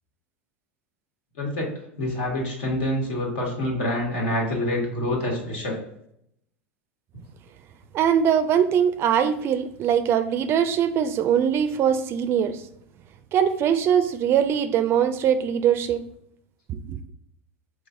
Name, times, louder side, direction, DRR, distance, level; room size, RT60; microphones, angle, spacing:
voice 1, 2.0-5.8, left 1 dB, 70° left, 1.5 m, -26 dB
voice 2, 7.9-12.6 13.3-16.1 16.7-17.0, right 8 dB, 40° right, 0.4 m, -22 dB
4.7 x 3.1 x 2.6 m
hypercardioid pair, 90°, 6 cm